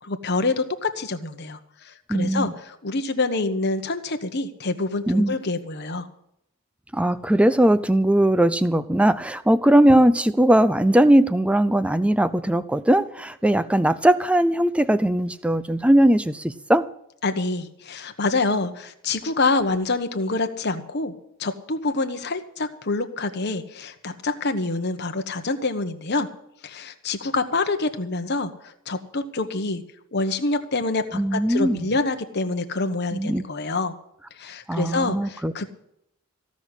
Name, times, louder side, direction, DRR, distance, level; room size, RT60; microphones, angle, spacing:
voice 1, 0.0-1.6 1.8-6.1 17.2-21.1 21.4-26.3 26.6-29.8 30.1-33.9 34.4-35.7, left 3 dB, 50° left, 1.1 m, -26 dB
voice 2, 2.1-2.5 5.1-5.3 6.9-16.9 31.1-31.9 33.1-33.4 34.7-35.7, right 1 dB, 5° right, 0.5 m, -19 dB
15.5 x 6.3 x 9.8 m
head